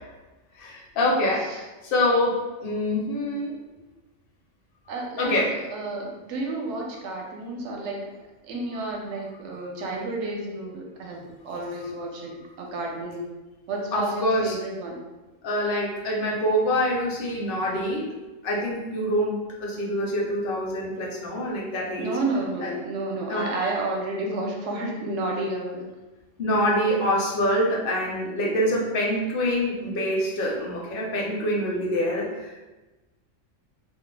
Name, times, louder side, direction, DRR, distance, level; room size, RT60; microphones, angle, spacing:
voice 1, 0.6-3.5 5.2-5.5 11.8-11.9 13.9-14.6 15.4-18.1 18.4-22.1 22.6-22.7 23.3-23.5 26.4-32.6, left 1 dB, 55° left, -2 dB, 0.7 m, -25 dB
voice 2, 4.9-5.4 5.7-8.1 8.4-12.3 12.6-13.2 13.7-15.0 22.0-25.9, right 2 dB, 70° right, 0 dB, 0.9 m, -31 dB
2.5 x 2.0 x 3.1 m, 1.1 s
omnidirectional pair, 1.3 m